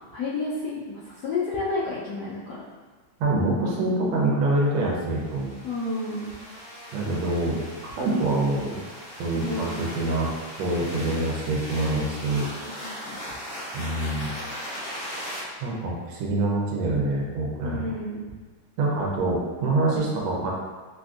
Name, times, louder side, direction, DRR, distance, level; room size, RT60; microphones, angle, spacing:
voice 1, 0.1-2.6 5.6-6.3 9.3-9.9 13.0-13.2 17.6-18.2, left 2 dB, 75° left, -8 dB, 0.9 m, -30 dB
voice 2, 3.2-5.6 6.9-7.6 8.0-8.8 9.2-10.3 10.6-12.5 13.7-14.3 15.6-17.9 18.8-20.5, right 2 dB, 80° right, -3 dB, 1.5 m, -25 dB
sound 1, 5.0-15.4, equal, 40° left, 1.7 m, -38 dB
3.6 x 2.5 x 2.3 m, 1.3 s
omnidirectional pair, 2.2 m